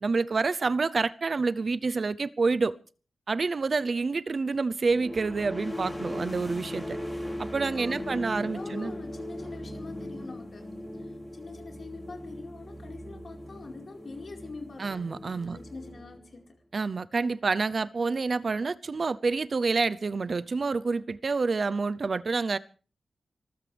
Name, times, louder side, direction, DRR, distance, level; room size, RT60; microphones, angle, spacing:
voice 1, 0.0-2.8 3.3-7.0 7.4-8.9 14.8-15.6 16.7-22.6, right 4 dB, 50° right, 0.7 m, -28 dB
sound 1, 4.9-16.4, left 1 dB, 10° left, 4.3 m, -39 dB
voice 2, 7.8-15.0 15.5-16.6, left 4 dB, 55° left, 4.6 m, -45 dB
25.5 x 14.5 x 3.4 m
wide cardioid pair, 140°, 0 cm